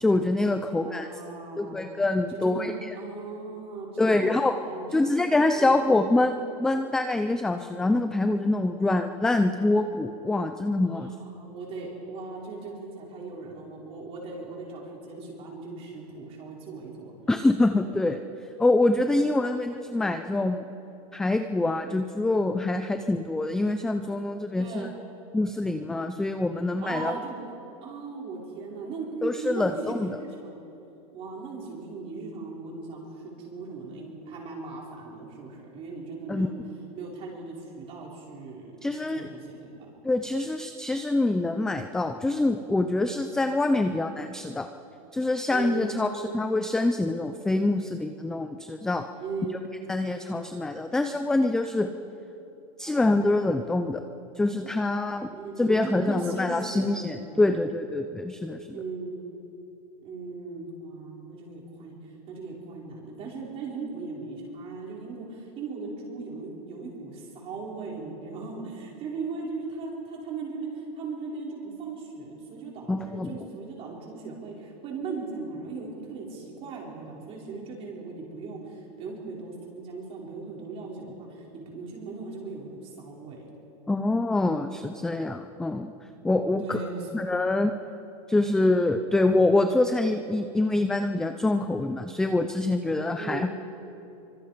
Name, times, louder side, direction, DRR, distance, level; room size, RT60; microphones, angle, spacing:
voice 1, 0.0-1.1 1.6-2.9 4.0-4.5 4.9-11.1 17.3-18.2 18.6-20.6 21.1-24.9 25.3-27.2 29.2-30.1 36.3-36.5 38.8-39.3 40.0-44.7 45.1-46.1 46.3-49.0 49.9-51.9 52.8-54.0 54.4-55.3 55.6-58.8 72.9-73.3 83.9-85.9 86.2-86.8 87.1-87.7 88.3-93.5, left 2 dB, 5° left, 7 dB, 0.4 m, -25 dB
voice 2, 0.6-1.8 2.3-5.1 5.6-5.8 10.8-17.1 24.6-24.9 26.8-27.4 27.8-30.6 31.1-36.6 37.0-39.9 45.5-46.4 49.2-49.7 55.3-57.5 58.7-59.2 60.0-62.0 62.3-83.5 86.6-87.1 93.2-93.5, right 4 dB, 30° right, -2 dB, 5.1 m, -38 dB
25.5 x 24.5 x 5.1 m, 2.9 s
supercardioid pair, 160°, 20 cm